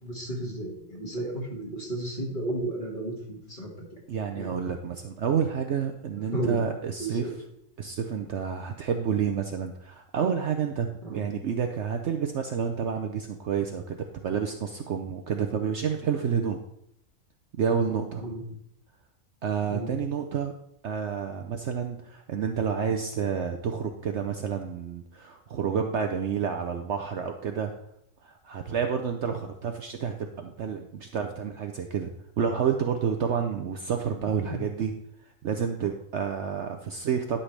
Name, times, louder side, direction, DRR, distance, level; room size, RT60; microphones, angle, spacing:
voice 1, 0.0-3.7 4.4-4.5 6.3-6.6 7.0-7.4 11.0-11.3 18.2-18.4 19.7-19.9 34.5-34.6, right 2 dB, 35° left, -3 dB, 2.2 m, -33 dB
voice 2, 4.1-7.3 7.8-16.6 17.5-18.2 19.4-20.5 20.8-27.7 28.2-34.9 35.4-37.4, right 7 dB, 60° right, 5 dB, 0.8 m, -29 dB
11.0 x 5.7 x 3.3 m, 0.74 s
omnidirectional pair, 1.5 m